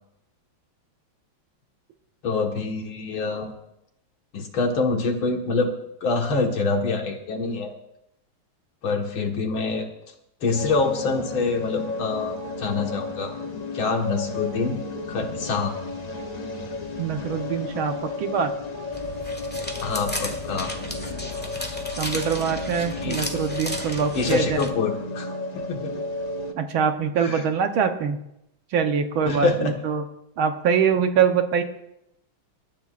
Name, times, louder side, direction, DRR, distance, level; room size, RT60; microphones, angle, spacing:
voice 1, 2.2-3.5 4.3-5.7 6.0-7.7 8.8-9.9 10.4-13.3 13.7-14.8 15.1-15.8 19.8-20.7 23.0-23.2 24.1-25.9 27.2-27.4 29.3-29.7, left 4 dB, 75° left, 2 dB, 2.5 m, -25 dB
sound 1, 10.5-26.5, left 3 dB, 55° left, 0.4 m, -33 dB
voice 2, 17.0-18.5 22.0-24.7 26.5-28.2 28.7-30.0 30.4-31.6, right 7 dB, 75° right, 6 dB, 1.8 m, -24 dB
sound 2, 18.9-24.7, left 1 dB, 5° left, 1.1 m, -34 dB
27.5 x 13.5 x 2.5 m, 0.82 s
omnidirectional pair, 2.3 m